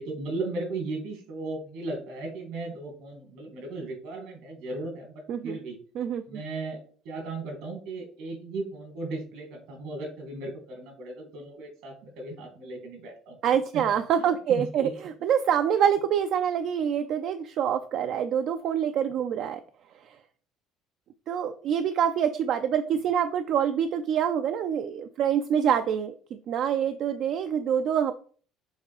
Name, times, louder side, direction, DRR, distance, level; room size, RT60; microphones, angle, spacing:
voice 1, 0.0-5.8 6.3-13.4 13.7-13.8 14.2-14.9, right 2 dB, 80° right, 4 dB, 2.5 m, -36 dB
voice 2, 6.0-6.4 13.4-19.6 20.0-20.2 21.3-28.1, right 8 dB, 60° right, 9 dB, 0.5 m, -26 dB
6.4 x 3.6 x 4.8 m, 0.43 s
cardioid pair, 120°, 0 cm